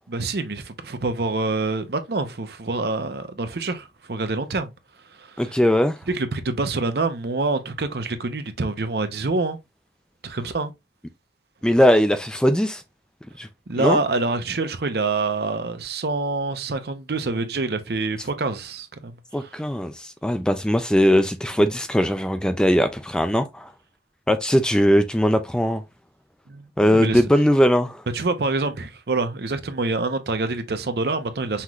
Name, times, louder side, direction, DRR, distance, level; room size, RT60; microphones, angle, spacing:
voice 1, 0.1-4.7 5.2-5.5 6.1-9.6 10.2-10.7 13.7-19.5 26.5-27.2 28.1-31.6, right 3 dB, 60° right, 0.7 m, -26 dB
voice 2, 5.4-6.0 11.6-12.8 13.4-13.5 13.8-14.0 19.3-23.7 24.3-25.8 26.8-28.0, equal, 5° left, 0.3 m, -20 dB
5.7 x 3.1 x 2.3 m
head